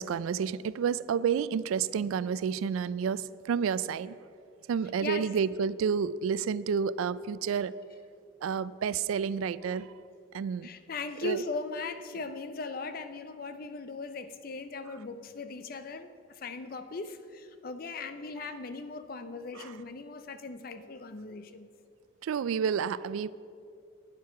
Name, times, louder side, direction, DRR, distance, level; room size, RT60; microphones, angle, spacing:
voice 1, 0.0-4.2 4.7-7.8 8.4-9.9 10.3-10.7 11.2-11.4 19.5-19.7 22.2-23.3, right 7 dB, 85° right, 18 dB, 0.3 m, -30 dB
voice 2, 10.6-21.7, left 3 dB, 45° left, 10 dB, 0.5 m, -39 dB
9.8 x 7.6 x 5.7 m, 2.4 s
head